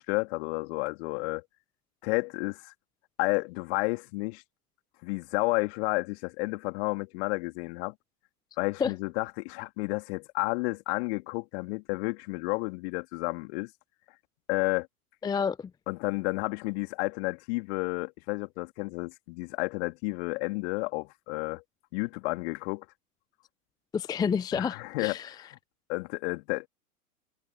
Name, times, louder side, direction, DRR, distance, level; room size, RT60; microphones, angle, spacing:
voice 1, 0.0-1.4 2.0-2.7 3.2-4.4 5.0-7.9 8.6-13.7 14.5-14.9 15.9-21.6 21.9-22.9 24.5-25.5 25.9-26.7, left 27 dB, 45° left, 3.4 m, -31 dB
voice 2, 15.2-15.7 23.9-25.3, left 6 dB, 10° left, 0.7 m, -29 dB
figure-of-eight pair, 105°, 46 cm